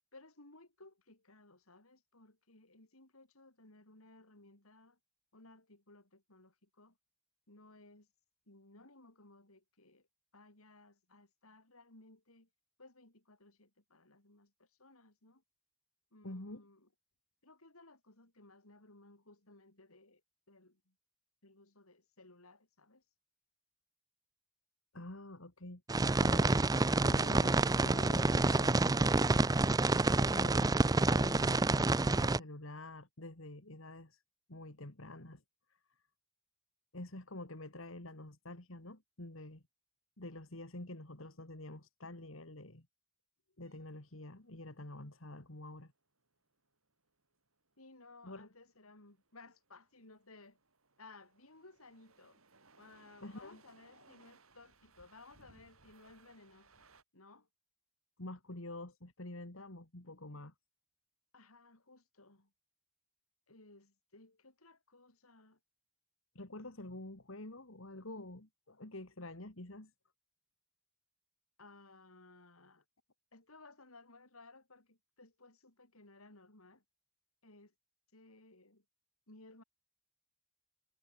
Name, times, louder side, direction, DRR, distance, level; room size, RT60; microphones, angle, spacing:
voice 1, 0.1-5.0 5.3-7.0 7.5-8.1 8.5-10.1 10.3-12.5 12.8-15.4 16.1-16.9 17.4-20.2 20.5-20.9 21.4-23.0 47.8-50.6 51.0-52.4 52.8-56.9 57.1-57.5 61.3-62.5 63.5-65.6 71.6-72.8 73.3-76.8 77.4-77.7 78.1-78.8 79.3-79.6, left 2 dB, 90° left, 5.3 m, -59 dB
voice 2, 16.2-16.6 24.9-25.8 26.2-26.7 27.0-29.4 29.7-34.2 34.5-35.4 35.7-35.8 36.9-39.6 40.2-42.9 43.6-45.9 48.2-48.5 53.2-53.6 53.9-54.1 58.2-60.5 66.3-69.9, left 1 dB, 65° left, 2.7 m, -48 dB
sound 1, 25.9-32.4, right 2 dB, 20° right, 0.5 m, -28 dB
sound 2, 43.6-57.0, right 3 dB, 75° right, 7.2 m, -66 dB
head